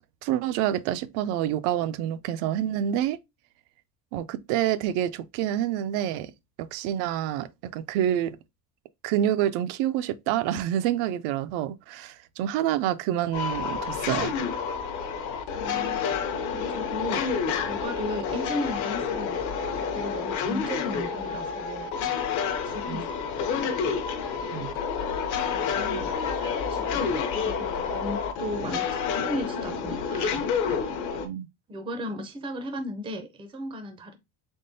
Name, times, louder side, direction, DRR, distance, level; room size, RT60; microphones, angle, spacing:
voice 1, 0.2-3.2 4.1-6.3 6.6-8.4 9.0-14.4 22.9-23.1 24.5-24.8 31.2-31.5, right 11 dB, 90° right, 0.5 m, -27 dB
sound 1, 13.3-31.3, left 6 dB, 50° left, 0.7 m, -29 dB
voice 2, 15.4-16.0 16.5-17.3 17.7-22.1 22.6-23.1 23.4-23.6 24.4-24.7 25.5-30.5 31.7-34.2, equal, 15° right, 0.4 m, -36 dB
3.7 x 3.6 x 2.6 m
cardioid pair, 170°, 39 cm